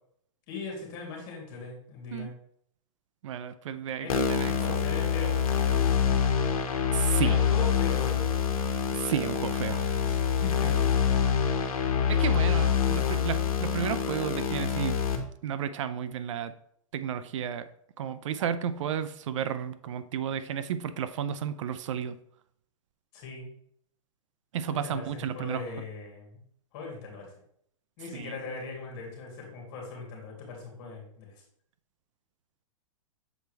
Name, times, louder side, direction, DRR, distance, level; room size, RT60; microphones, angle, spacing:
voice 1, 0.5-2.3 4.0-4.1 4.4-5.9 7.2-8.4 10.0-10.7 23.1-23.5 24.7-26.4 26.7-27.3 28.0-31.4, left 3 dB, 40° left, -1 dB, 2.7 m, -40 dB
voice 2, 3.2-4.5 6.9-7.4 8.9-10.1 12.1-16.5 16.9-17.7 18.0-22.2 24.5-25.6 28.1-28.3, right 8 dB, 60° right, 13 dB, 0.5 m, -32 dB
sound 1, 4.1-15.2, left 7 dB, 85° left, 1.3 m, -26 dB
7.1 x 4.5 x 3.3 m, 0.68 s
hypercardioid pair, 155°, 18 cm